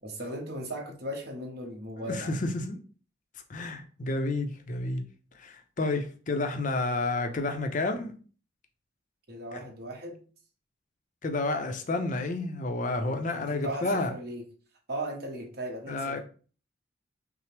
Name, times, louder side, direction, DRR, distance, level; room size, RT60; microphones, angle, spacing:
voice 1, 0.0-2.4 9.3-10.2 13.0-14.4 14.9-16.2, right 1 dB, 55° right, 0 dB, 1.0 m, -37 dB
voice 2, 2.1-2.8 3.5-5.0 5.3-8.1 9.5-9.6 11.2-14.1 15.9-16.2, left 2 dB, 40° left, 6 dB, 0.5 m, -30 dB
5.7 x 2.0 x 3.2 m, 0.39 s
head